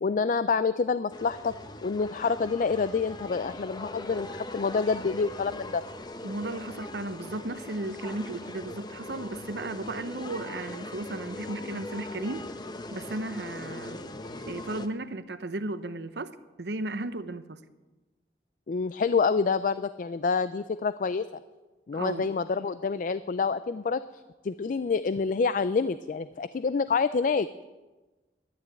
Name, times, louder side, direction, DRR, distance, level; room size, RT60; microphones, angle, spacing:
voice 1, 0.0-1.5 1.8-5.8 18.7-21.2 21.9-24.0 24.4-27.5, left 5 dB, 50° left, 0.4 m, -27 dB
sound 1, 1.1-14.9, left 2 dB, 25° left, 0.8 m, -40 dB
voice 2, 6.2-12.5 12.9-14.0 14.5-17.6 21.9-22.3, right 2 dB, 70° right, 0.8 m, -35 dB
11.5 x 11.0 x 8.4 m
head